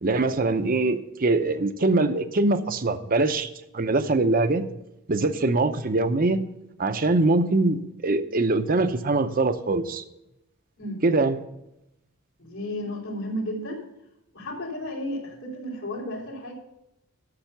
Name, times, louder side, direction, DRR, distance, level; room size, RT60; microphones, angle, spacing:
voice 1, 0.0-4.7 5.1-6.4 6.8-10.0 11.0-11.4, right 2 dB, 40° right, 11 dB, 0.7 m, -23 dB
voice 2, 12.4-13.8 14.3-16.5, left 1 dB, 80° left, -9 dB, 3.5 m, -33 dB
12.0 x 6.8 x 6.8 m, 0.88 s
head